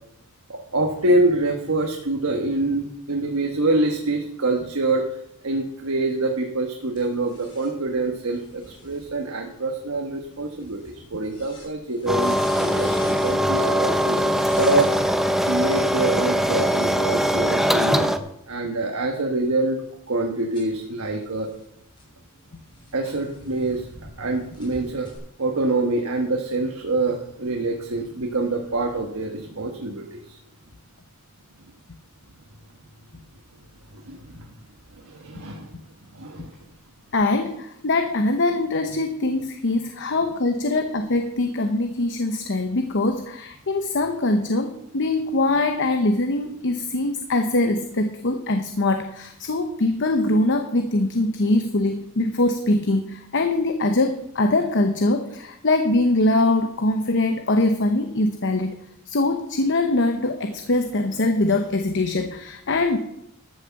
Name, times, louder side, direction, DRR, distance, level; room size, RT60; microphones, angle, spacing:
voice 1, 0.5-5.0 5.4-14.3 14.6-15.2 15.5-18.1 18.5-19.8 20.1-21.5 22.9-25.1 25.4-30.4 33.9-34.5 34.9-35.8 36.1-36.6, right 2 dB, 80° right, 3 dB, 1.3 m, -25 dB
sound 1, 7.0-15.0 16.1-18.5 19.0-24.1 24.5-25.2, left 2 dB, 25° left, 5.8 m, -47 dB
sound 2, 12.1-18.2, equal, ahead, 0.6 m, -21 dB
voice 2, 37.1-58.8 59.1-63.0, left 2 dB, 55° left, 7 dB, 0.9 m, -22 dB
13.0 x 6.4 x 7.0 m, 0.77 s
head